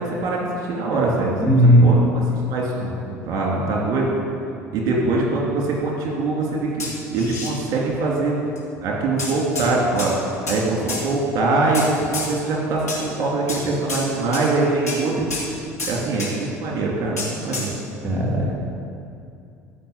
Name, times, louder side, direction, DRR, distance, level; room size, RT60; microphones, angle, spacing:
voice 1, 0.0-1.3 1.8-2.0 2.5-4.1 4.7-8.5 8.8-10.1 10.5-15.3 15.9-17.7, right 3 dB, 50° right, -2 dB, 3.0 m, -23 dB
voice 2, 1.4-1.9 18.0-18.5, equal, 30° right, -2 dB, 2.6 m, -15 dB
sound 1, 6.8-7.5 8.6-8.7 9.2-9.7 10.0-10.6 10.9-11.0 11.7-12.3 12.9-13.0 13.5-13.6 13.9-14.1 14.3-14.5 14.9-15.0 15.3-15.5 15.8-16.3 17.2-17.7, left 3 dB, 85° left, 2.5 m, -29 dB
14.5 x 5.9 x 8.7 m, 2.5 s
figure-of-eight pair, 65°, 8 cm